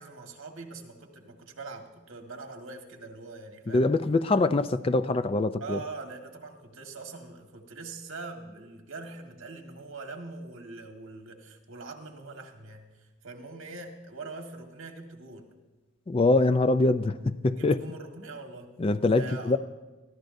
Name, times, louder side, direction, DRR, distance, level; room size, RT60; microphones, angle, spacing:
voice 1, 0.0-4.0 5.6-15.5 17.5-18.7 19.1-19.6, right 3 dB, 75° right, 1.5 m, -43 dB
voice 2, 3.7-5.8 16.1-17.8 18.8-19.6, left 2 dB, 25° left, 0.3 m, -24 dB
21.0 x 14.5 x 2.6 m
head